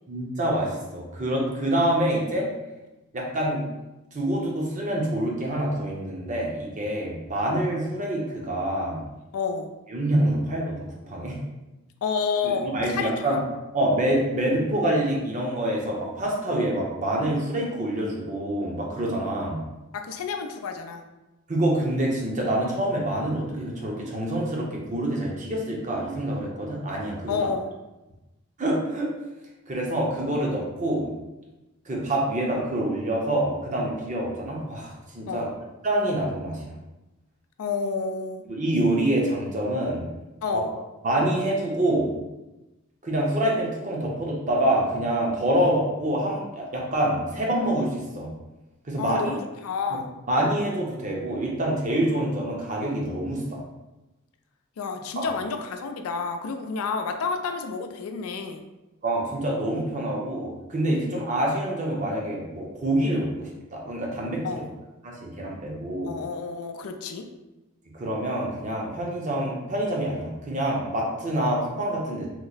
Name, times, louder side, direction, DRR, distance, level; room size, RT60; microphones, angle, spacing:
voice 1, 0.1-2.5 3.1-3.7 4.1-9.0 9.9-11.4 12.4-13.4 13.7-19.6 21.5-27.4 28.6-29.1 29.7-31.1 31.9-35.5 35.8-36.7 38.5-40.1 40.5-40.6 41.0-42.1 43.0-48.3 48.9-49.3 49.9-50.0 50.3-53.6 55.2-55.3 59.0-64.6 65.0-66.1 67.9-72.3, right 1 dB, 35° right, -2 dB, 0.6 m, -26 dB
voice 2, 9.3-9.7 12.0-12.7 13.0-13.4 19.9-21.0 27.3-27.7 35.3-35.5 37.6-38.4 40.4-40.7 49.0-50.1 54.8-58.6 64.4-64.7 66.0-67.3, left 5 dB, 90° left, 6 dB, 0.4 m, -29 dB
3.0 x 2.0 x 3.9 m, 1.0 s
head